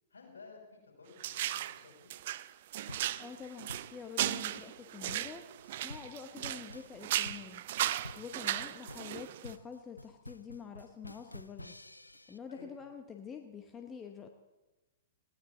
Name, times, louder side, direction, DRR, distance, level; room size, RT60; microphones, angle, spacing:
voice 1, 0.1-2.1 8.4-8.6 12.5-12.8, left 4 dB, 65° left, 0 dB, 5.8 m, -54 dB
sound 1, 1.2-1.8 2.1-6.7 7.0-9.5, right 13 dB, 45° right, 0.4 m, -36 dB
sound 2, 2.9-12.4, left 2 dB, 85° left, 0.5 m, -50 dB
voice 2, 3.2-5.5 5.8-7.6 8.2-11.7 12.3-14.3, left 6 dB, 15° left, 5 dB, 1.0 m, -47 dB
19.5 x 16.5 x 3.9 m, 1.1 s
figure-of-eight pair, 110°, 0 cm